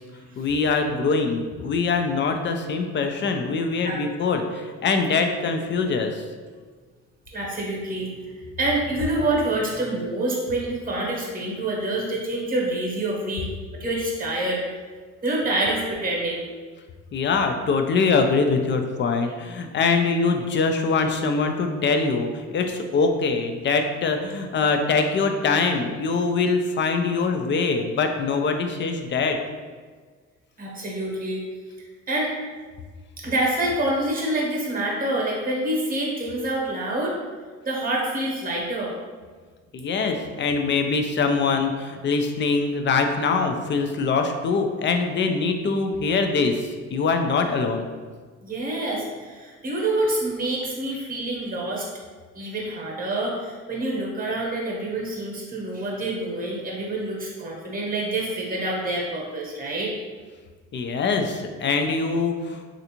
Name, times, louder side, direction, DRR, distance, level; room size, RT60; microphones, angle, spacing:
voice 1, 0.4-6.2 17.1-29.4 39.7-46.6 46.9-47.9 60.7-62.6, left 4 dB, 40° left, 5 dB, 0.4 m, -23 dB
voice 2, 7.3-8.1 8.6-13.5 13.8-14.6 15.2-16.4 30.6-31.4 32.1-32.3 33.2-37.2 37.6-38.9 48.4-51.9 52.3-59.9, right 1 dB, 30° right, -2 dB, 1.0 m, -27 dB
3.2 x 2.5 x 2.9 m, 1.5 s
cardioid pair, 90°, 30 cm